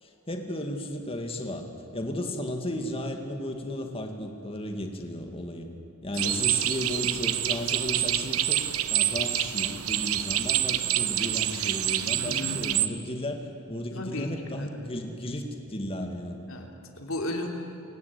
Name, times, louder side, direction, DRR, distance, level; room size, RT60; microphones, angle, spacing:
voice 1, 0.0-1.6 1.9-5.7 6.0-8.6 8.9-16.4, left 1 dB, 25° left, 4 dB, 2.4 m, -34 dB
sound 1, 6.2-12.9, right 12 dB, 75° right, 1.0 m, -27 dB
voice 2, 12.2-12.6 13.9-14.8 16.5-17.5, left 1 dB, 65° left, 2 dB, 3.2 m, -35 dB
29.0 x 18.0 x 8.6 m, 2.9 s
head